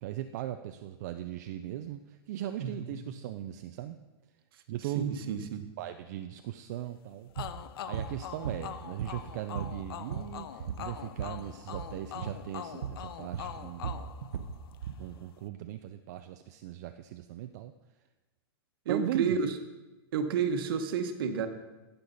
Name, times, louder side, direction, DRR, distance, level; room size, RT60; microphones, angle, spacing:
voice 1, 0.0-4.0 4.7-5.1 5.8-7.3 7.8-14.1 15.0-17.7 18.9-19.4, right 12 dB, 40° right, 8 dB, 0.4 m, -38 dB
voice 2, 2.6-3.1 4.9-5.7 18.8-19.5 20.1-21.5, right 6 dB, 55° right, 7 dB, 1.1 m, -31 dB
sound 1, 7.4-14.9, left 9 dB, 60° left, 0.6 m, -43 dB
sound 2, 7.4-7.5 7.9-8.1 8.4-9.3 9.5-11.4 11.7-11.9 12.2-12.4 12.8-13.0 13.3-15.0, right 7 dB, 80° right, 0.8 m, -37 dB
15.5 x 6.7 x 4.0 m, 1.1 s
supercardioid pair, 165°, 14 cm